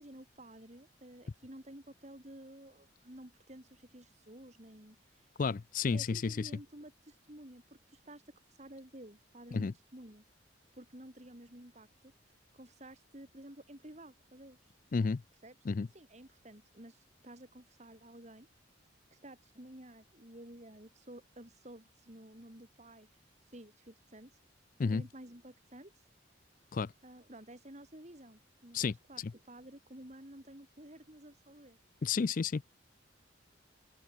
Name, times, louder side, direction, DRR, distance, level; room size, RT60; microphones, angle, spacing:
voice 1, 0.0-5.0 5.9-8.2 8.6-10.2 10.8-12.1 12.5-14.6 15.4-15.6 15.9-18.5 19.1-23.1 23.5-24.3 24.9-25.9 27.0-31.8, right 1 dB, 35° right, 3.5 m, -52 dB
voice 2, 5.4-6.5 9.5-9.7 14.9-15.2 15.6-15.9 24.8-25.0 26.7-26.9 28.7-29.3 32.0-32.6, left 5 dB, 45° left, 0.4 m, -32 dB
head